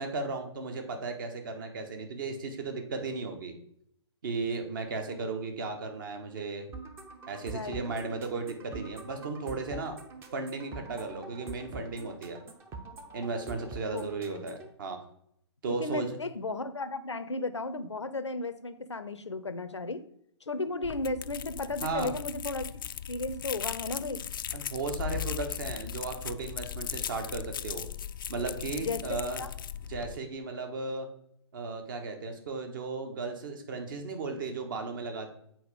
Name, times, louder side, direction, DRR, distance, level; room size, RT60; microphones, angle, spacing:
voice 1, 0.0-3.5 4.2-6.7 7.3-10.0 10.3-12.4 13.1-15.0 15.6-16.1 21.8-22.1 24.5-27.9 28.3-29.5 29.9-31.1 31.5-35.3, right 3 dB, 45° right, 5 dB, 1.4 m, -35 dB
sound 1, 6.7-14.7, right 3 dB, 15° right, 0.7 m, -45 dB
voice 2, 7.5-7.8 13.9-14.4 15.7-20.0 20.4-22.6 23.1-24.2 28.8-29.5, left 3 dB, 80° left, 11 dB, 0.6 m, -35 dB
sound 2, 20.8-30.2, left 9 dB, 50° left, 0.4 m, -38 dB
7.8 x 4.5 x 4.9 m, 0.71 s
figure-of-eight pair, 125°, 15 cm